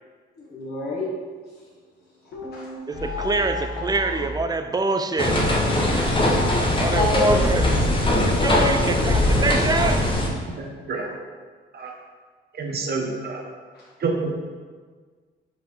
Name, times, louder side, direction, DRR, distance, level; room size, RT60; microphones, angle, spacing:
voice 1, 0.3-1.1 2.5-2.6 5.9-7.4 8.5-9.0 13.7-13.9, left 2 dB, 55° left, -7 dB, 1.4 m, -28 dB
sound 1, 2.3-4.5, left 2 dB, 80° left, 1.5 m, -32 dB
voice 2, 2.9-5.4 6.8-7.9 8.2-10.2, right 3 dB, 20° right, 8 dB, 0.4 m, -25 dB
sound 2, 5.2-10.3, left 1 dB, 25° left, 1.1 m, -21 dB
voice 3, 10.6-11.1 11.7-11.9 12.6-13.4 14.0-14.3, right 4 dB, 50° right, 0 dB, 1.2 m, -28 dB
5.2 x 4.7 x 4.5 m, 1.5 s
cardioid pair, 90°, 20 cm